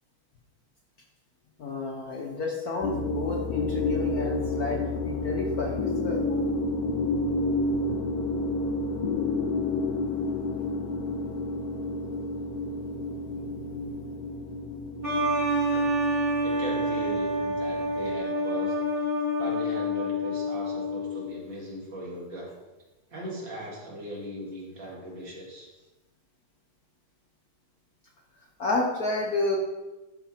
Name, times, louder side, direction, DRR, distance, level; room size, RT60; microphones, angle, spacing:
voice 1, 1.6-6.5 13.4-14.0 28.6-29.6, left 2 dB, 55° left, -1 dB, 1.2 m, -31 dB
sound 1, 2.8-18.2, left 2 dB, 75° left, 0.8 m, -30 dB
sound 2, 15.0-21.3, equal, 25° right, 1.7 m, -27 dB
voice 2, 15.6-15.9 16.4-19.0 19.4-22.5 23.1-25.7, equal, 55° right, -4 dB, 3.0 m, -39 dB
11.5 x 5.0 x 4.3 m, 1.1 s
omnidirectional pair, 2.4 m